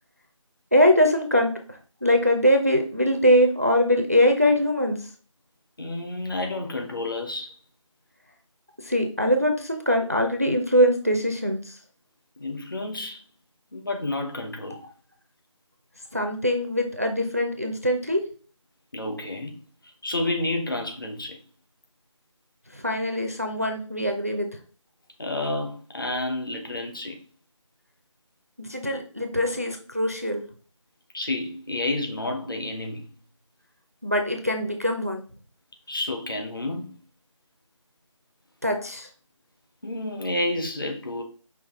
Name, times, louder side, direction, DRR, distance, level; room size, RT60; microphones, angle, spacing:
voice 1, 0.7-1.5 2.0-5.0 8.9-11.6 16.1-18.2 22.8-24.5 28.6-30.4 34.0-35.2 38.6-39.1, equal, 30° right, 0.4 m, -22 dB
voice 2, 5.8-7.5 12.4-13.2 13.7-14.8 18.9-19.6 20.0-21.4 25.2-27.2 31.1-33.0 35.9-36.9 39.8-41.2, left 2 dB, 40° left, 0.9 m, -30 dB
5.5 x 2.4 x 3.5 m
figure-of-eight pair, 165°, 17 cm